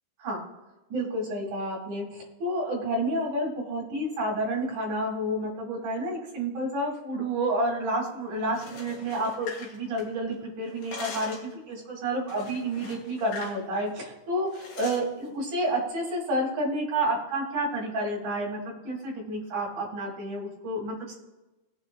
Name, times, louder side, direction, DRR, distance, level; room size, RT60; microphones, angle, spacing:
voice 1, 0.9-21.2, right 1 dB, 45° right, -2 dB, 3.5 m, -30 dB
sound 1, 8.4-10.3 10.6-11.5 12.3-13.6 13.9-14.1 14.5-15.1, left 4 dB, 55° left, 3.6 m, -42 dB
20.0 x 7.9 x 2.3 m, 1.1 s
omnidirectional pair, 5.4 m